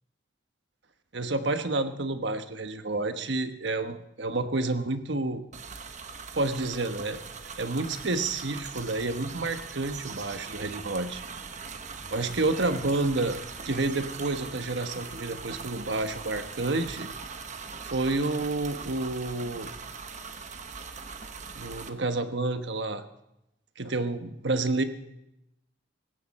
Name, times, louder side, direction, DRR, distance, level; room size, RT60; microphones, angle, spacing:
voice 1, 1.1-5.4 6.3-7.2 7.6-11.2 12.1-13.4 13.6-17.1 17.8-19.7 21.5-23.0 23.8-24.8, right 2 dB, 70° right, 8 dB, 1.2 m, -29 dB
sound 1, 5.5-21.9, right 5 dB, 40° right, 1.1 m, -41 dB
19.5 x 16.5 x 4.3 m, 0.86 s
head